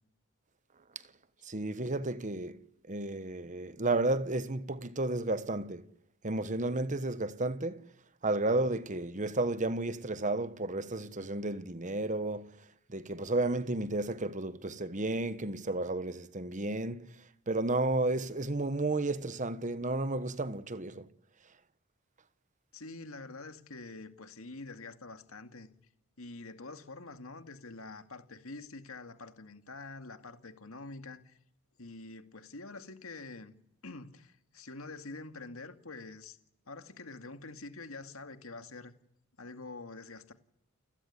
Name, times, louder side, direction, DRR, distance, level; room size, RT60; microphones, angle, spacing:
voice 1, 1.4-2.6 2.9-5.8 6.2-7.8 8.2-12.5 12.9-17.1 17.5-21.0, right 2 dB, 35° right, 1.3 m, -32 dB
voice 2, 22.7-25.7 26.2-31.4 31.8-33.6 33.8-36.4 36.7-38.9 39.4-40.3, left 3 dB, 70° left, 2.4 m, -46 dB
30.0 x 16.0 x 9.8 m
head